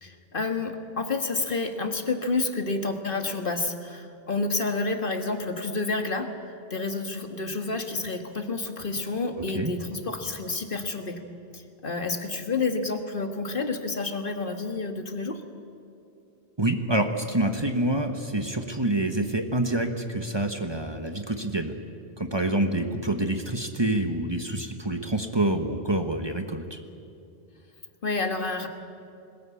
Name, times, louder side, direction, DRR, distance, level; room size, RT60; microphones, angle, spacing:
voice 1, 0.0-6.3 6.7-11.2 11.5-15.4 28.0-28.7, left 3 dB, 60° left, 6 dB, 1.8 m, -29 dB
voice 2, 16.6-21.7 22.2-26.8, right 1 dB, 25° right, 6 dB, 1.3 m, -27 dB
21.5 x 20.0 x 8.4 m, 2.7 s
omnidirectional pair, 1.0 m